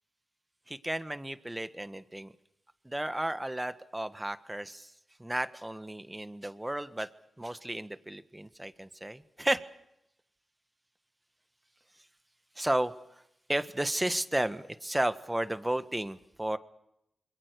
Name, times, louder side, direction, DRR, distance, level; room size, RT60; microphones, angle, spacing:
voice 1, 0.7-2.3 2.8-4.9 5.2-7.1 7.4-9.6 12.5-13.2 13.5-16.6, right 1 dB, 15° right, 11 dB, 1.5 m, -33 dB
27.0 x 22.0 x 6.8 m, 0.83 s
cardioid pair, 45°, 0 cm